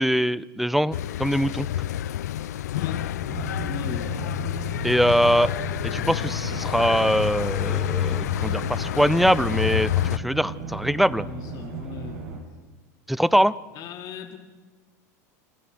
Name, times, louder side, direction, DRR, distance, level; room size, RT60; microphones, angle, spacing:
voice 1, 0.0-1.7 4.8-5.5 5.8-11.2 13.1-13.6, equal, ahead, 20 dB, 0.6 m, -22 dB
sound 1, 0.9-10.2, left 12 dB, 85° left, 0.5 m, -28 dB
sound 2, 3.2-12.4, right 4 dB, 70° right, 6.5 m, -36 dB
voice 2, 3.6-4.1 11.2-12.2 13.7-14.4, left 8 dB, 45° left, 3 dB, 2.9 m, -37 dB
28.5 x 12.5 x 7.8 m, 1.3 s
hypercardioid pair, 105°, 9 cm